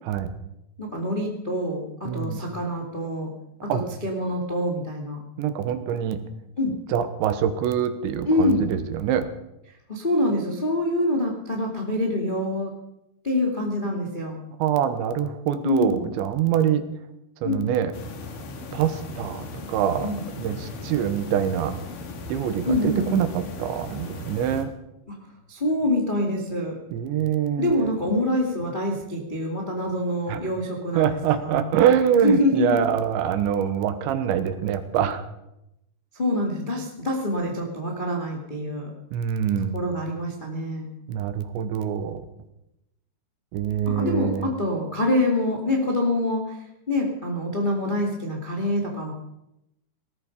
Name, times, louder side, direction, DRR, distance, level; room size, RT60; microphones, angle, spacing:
voice 1, 0.8-3.3 3.6-5.2 6.6-6.8 8.2-8.6 9.9-12.7 13.2-14.4 15.6-16.0 17.4-17.7 20.0-20.2 22.6-23.2 25.1-25.2 25.5-26.8 27.6-31.6 32.1-32.8 36.1-38.9 39.7-40.9 43.8-46.6 46.9-49.1, left 1 dB, 75° left, 0 dB, 0.4 m, -25 dB
voice 2, 2.0-2.4 3.7-3.8 5.4-6.2 6.9-9.3 14.6-16.8 17.4-17.9 18.7-20.1 20.4-21.7 22.3-24.7 26.9-27.9 30.3-30.4 31.0-35.2 39.1-39.8 41.1-42.2 43.5-44.5, right 9 dB, 80° right, 10 dB, 3.3 m, -24 dB
sound 1, 17.9-24.6, left 3 dB, 55° left, 2.8 m, -37 dB
18.5 x 14.0 x 5.3 m, 0.86 s
omnidirectional pair, 5.5 m